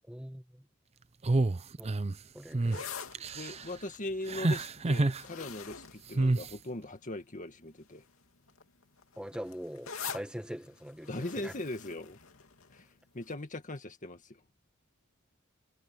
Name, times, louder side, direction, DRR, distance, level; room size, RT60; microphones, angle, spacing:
voice 1, 0.1-0.6 1.8-1.9 2.3-2.9 9.2-11.5, equal, 5° right, 1.7 m, -42 dB
sound 1, 1.2-2.1 2.5-2.8 3.1-3.6 4.3-5.2 6.1-6.5, right 2 dB, 30° right, 0.6 m, -28 dB
sound 2, 2.5-7.0 7.7-8.0 8.3-12.9 13.3-13.4, left 7 dB, 80° left, 2.8 m, -45 dB
voice 2, 3.3-8.0 11.1-12.2 12.7-12.9 13.1-14.4, left 1 dB, 40° left, 1.9 m, -40 dB
head